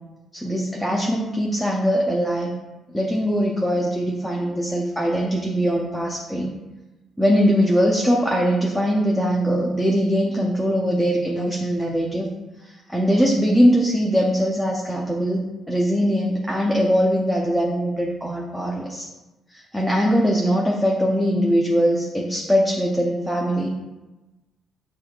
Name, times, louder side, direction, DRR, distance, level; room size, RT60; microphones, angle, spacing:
voice 1, 0.3-2.5 2.9-6.6 7.2-12.3 12.6-19.1 19.5-23.7, equal, 5° right, -2 dB, 0.5 m, -21 dB
4.6 x 2.4 x 4.4 m, 1.1 s
cardioid pair, 90°, 0 cm